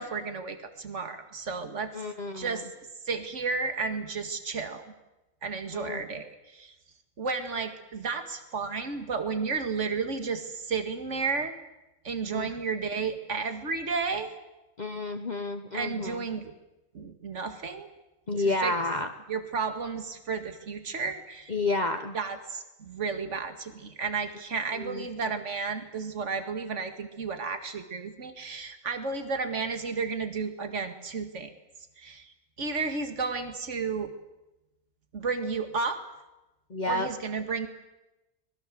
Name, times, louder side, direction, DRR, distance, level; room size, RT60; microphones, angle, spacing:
voice 1, 0.0-1.9 2.3-2.7 3.1-4.8 5.4-6.7 7.2-11.5 12.0-14.3 15.7-16.5 16.9-17.9 18.4-18.7 19.3-21.5 22.1-31.5 32.0-34.1 35.1-36.0 36.9-37.7, right 4 dB, 65° right, 8 dB, 2.3 m, -32 dB
voice 2, 1.9-2.6 5.7-6.0 12.3-12.5 14.8-16.2 18.3-19.1 21.5-22.2 24.8-25.0 36.7-37.1, left 2 dB, 35° left, 6 dB, 1.1 m, -30 dB
25.0 x 21.0 x 7.7 m, 0.99 s
omnidirectional pair, 1.4 m